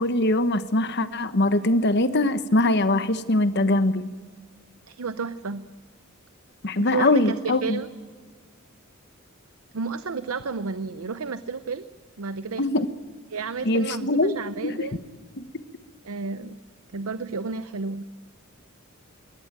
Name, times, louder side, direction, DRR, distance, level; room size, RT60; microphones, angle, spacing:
voice 1, 0.0-4.1 6.6-7.8 12.6-12.9 13.6-14.3 14.6-14.9 15.4-15.5, left 2 dB, 50° left, 12 dB, 1.2 m, -22 dB
voice 2, 4.9-5.6 6.8-7.3 7.6-7.9 9.7-11.9 12.2-12.6 13.3-15.0 16.0-16.6 16.9-18.0, right 4 dB, 85° right, 13 dB, 0.7 m, -31 dB
22.0 x 18.0 x 9.1 m, 1.5 s
head